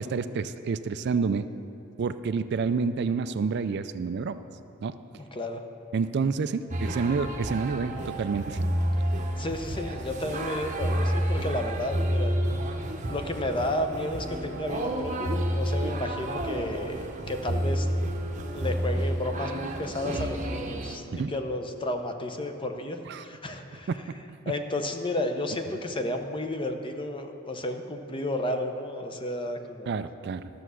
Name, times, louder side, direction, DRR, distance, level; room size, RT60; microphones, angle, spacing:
voice 1, 0.0-1.5 2.0-4.4 4.8-5.0 5.9-8.7 21.1-21.3 23.1-23.2 23.9-24.0 29.9-30.5, right 5 dB, 55° right, 12 dB, 0.4 m, -28 dB
voice 2, 5.2-5.6 9.4-12.3 13.1-17.9 18.5-23.9 24.5-29.9, left 1 dB, 25° left, 6 dB, 0.7 m, -32 dB
sound 1, 6.7-21.0, equal, 35° right, 0.8 m, -30 dB
13.5 x 6.8 x 6.2 m, 3.0 s
head